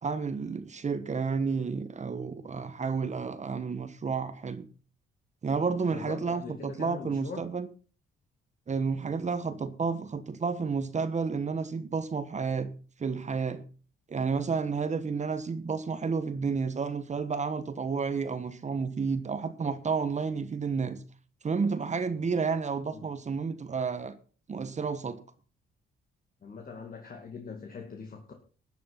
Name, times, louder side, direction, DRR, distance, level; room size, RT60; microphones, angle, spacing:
voice 1, 0.0-4.6 5.4-7.7 8.7-12.7 13.0-13.6 14.1-21.0 21.4-24.1 24.5-25.2, right 5 dB, 35° right, 1.4 m, -31 dB
voice 2, 5.9-7.4 22.9-23.0 26.4-28.3, left 5 dB, 45° left, 2.4 m, -42 dB
13.0 x 8.5 x 5.8 m
cardioid pair, 90°, 20 cm